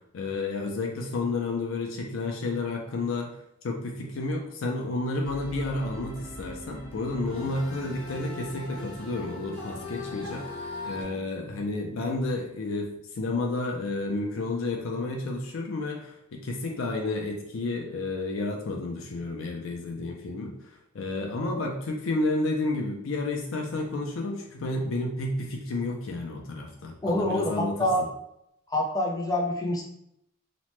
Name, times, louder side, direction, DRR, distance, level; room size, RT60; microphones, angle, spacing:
voice 1, 0.1-3.3 3.6-20.5 20.9-27.9, left 2 dB, 80° left, 1 dB, 0.5 m, -31 dB
sound 1, 5.2-11.0, left 2 dB, 50° left, 1.1 m, -39 dB
voice 2, 27.0-28.0 28.7-29.8, left 1 dB, 20° left, 0 dB, 0.5 m, -27 dB
2.9 x 2.1 x 2.9 m, 0.78 s
head